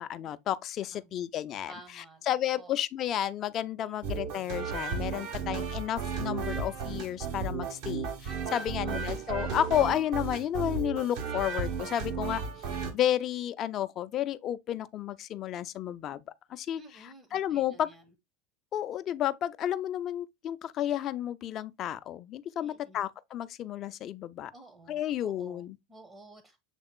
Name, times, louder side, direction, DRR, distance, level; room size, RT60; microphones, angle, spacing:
voice 1, 0.0-12.4 12.9-16.2 16.5-16.8 17.3-17.9 18.7-24.5 24.9-25.8, left 11 dB, 40° left, 0.4 m, -32 dB
voice 2, 1.7-2.7 3.8-4.2 8.5-9.0 16.8-18.0 22.6-23.1 24.5-26.6, right 2 dB, 25° right, 0.9 m, -53 dB
sound 1, 4.0-12.9, right 5 dB, 60° right, 1.2 m, -34 dB
6.7 x 3.6 x 2.2 m
hypercardioid pair, 80°, 0 cm